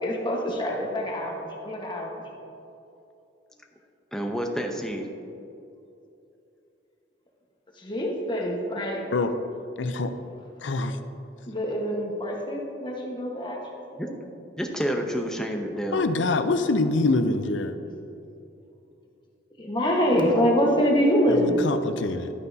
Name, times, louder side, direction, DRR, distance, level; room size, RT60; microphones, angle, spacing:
voice 1, 0.0-2.2 7.8-9.3 11.5-13.6 13.9-14.2 19.6-21.7, equal, 25° left, -1 dB, 1.3 m, -25 dB
voice 2, 4.1-5.1 14.0-14.1 14.6-16.1, equal, 5° left, 2 dB, 0.7 m, -29 dB
voice 3, 9.8-10.1 10.6-11.0 15.9-17.8 21.3-22.3, left 3 dB, 85° left, 9 dB, 0.6 m, -25 dB
12.0 x 9.4 x 2.8 m, 2.7 s
head